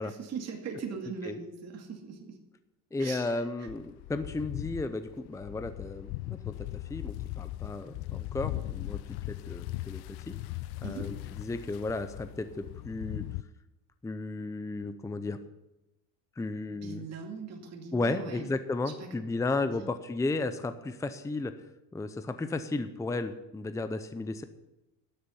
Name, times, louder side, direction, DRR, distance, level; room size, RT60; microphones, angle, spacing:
voice 1, 0.0-2.4 3.0-3.4 10.8-11.1 16.8-18.5 19.0-19.1 19.6-19.9, right 5 dB, 45° right, 1 dB, 2.4 m, -40 dB
voice 2, 2.9-10.3 10.8-13.2 14.0-15.4 16.4-17.1 17.9-21.5 21.9-24.4, left 2 dB, 10° left, 10 dB, 0.6 m, -34 dB
sound 1, 3.7-13.4, left 17 dB, 85° left, 0.5 m, -39 dB
12.5 x 6.8 x 9.7 m, 0.96 s
cardioid pair, 125°, 37 cm